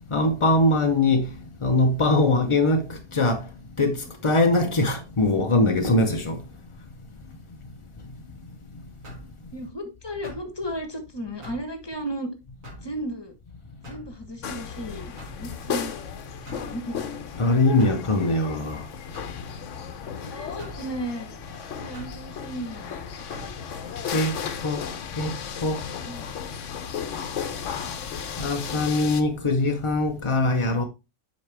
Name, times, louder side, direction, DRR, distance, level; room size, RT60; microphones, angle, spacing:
voice 1, 0.1-1.3 1.6-3.4 3.8-6.4 17.4-18.8 24.1-24.3 24.6-24.8 25.2-25.3 25.6-25.8 28.4-30.8, left 2 dB, 40° left, 0.4 m, -22 dB
sound 1, 9.0-9.3 10.2-10.5 11.4-11.7 12.6-12.9 13.8-14.1 15.2-15.4 16.4-16.7 17.8-18.0 19.1-19.4 20.6-20.8 21.9-22.2 23.3-23.5, equal, 65° right, 2.9 m, -42 dB
voice 2, 9.5-12.3 12.8-13.3 13.9-16.1 16.5-17.0 20.2-21.3 21.7-23.0 26.0-26.4, right 1 dB, 20° left, 1.1 m, -35 dB
sound 2, 14.4-29.2, left 7 dB, 60° left, 1.0 m, -35 dB
7.7 x 5.2 x 3.3 m
omnidirectional pair, 1.5 m